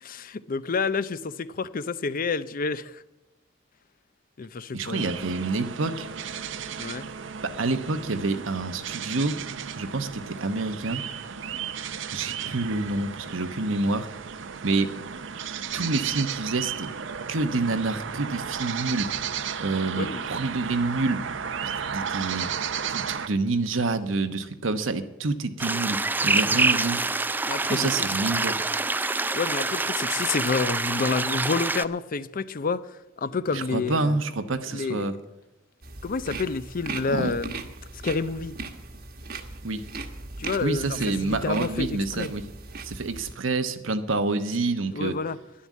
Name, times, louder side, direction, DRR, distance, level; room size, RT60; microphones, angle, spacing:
voice 1, 0.0-3.0 4.4-5.3 6.8-7.1 19.9-20.4 26.6-27.0 27.4-27.9 28.3-28.5 29.3-34.2 34.7-35.1 36.0-37.7 37.9-38.5 40.4-42.3 44.9-45.4, left 4 dB, 45° left, 0.5 m, -29 dB
voice 2, 4.7-6.1 7.4-9.4 9.7-11.0 12.1-14.1 14.6-14.9 15.7-16.9 17.3-19.1 19.6-21.2 21.6-22.5 22.9-27.0 27.6-28.6 33.5-35.1 37.1-37.3 39.6-39.8 40.6-42.4 42.8-45.2, right 3 dB, 85° right, 1.0 m, -27 dB
sound 1, 4.9-23.3, right 7 dB, 70° right, 0.7 m, -34 dB
sound 2, 25.6-31.8, right 3 dB, 10° right, 0.3 m, -26 dB
sound 3, 35.8-43.3, right 3 dB, 55° right, 1.3 m, -38 dB
11.5 x 10.5 x 7.4 m
head